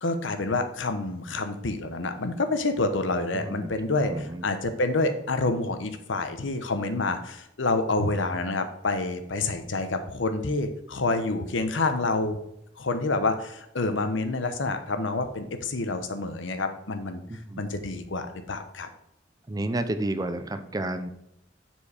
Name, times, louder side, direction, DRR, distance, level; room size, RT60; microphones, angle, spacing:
voice 1, 0.0-12.4 12.8-17.2 17.6-18.9, left 3 dB, 75° left, 8 dB, 0.9 m, -28 dB
voice 2, 3.3-3.7 4.1-4.4 17.3-17.6 19.5-21.1, right 1 dB, 20° right, 9 dB, 0.5 m, -31 dB
7.0 x 4.6 x 4.9 m, 0.80 s
head